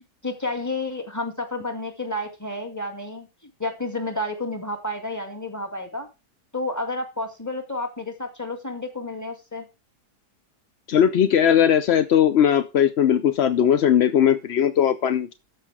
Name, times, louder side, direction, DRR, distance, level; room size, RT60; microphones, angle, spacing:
voice 1, 0.2-3.3 3.6-6.1 6.5-9.7, left 2 dB, 10° left, 4 dB, 2.1 m, -30 dB
voice 2, 10.9-15.3, left 9 dB, 60° left, 11 dB, 0.7 m, -19 dB
13.0 x 5.3 x 4.9 m, 0.28 s
omnidirectional pair, 1.7 m